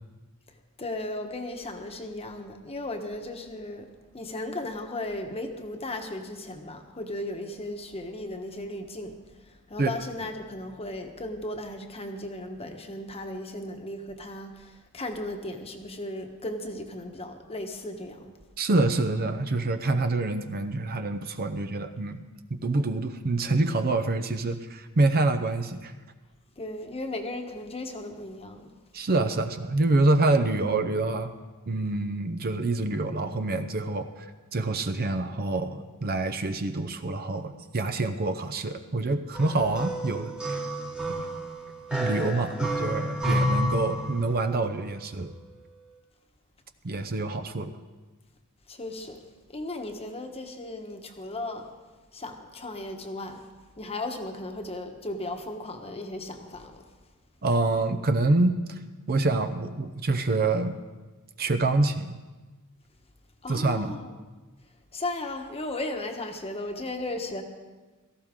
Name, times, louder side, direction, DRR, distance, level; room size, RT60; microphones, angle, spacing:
voice 1, 0.8-3.9 4.1-18.3 26.6-28.7 42.5-42.6 48.7-49.2 49.5-51.7 52.1-53.4 53.8-56.8 63.4-64.1 64.9-67.4, left 1 dB, 25° left, 5 dB, 1.2 m, -36 dB
voice 2, 18.6-22.2 22.5-25.9 28.9-31.3 31.7-34.3 34.5-40.6 41.2-41.3 41.9-45.3 46.8-47.7 57.4-58.8 59.1-60.7 61.4-62.2 63.5-64.0, right 2 dB, 45° right, 10 dB, 0.6 m, -26 dB
sound 1, 39.3-44.5, equal, 5° right, 1.2 m, -30 dB
17.0 x 14.0 x 3.7 m, 1.3 s
head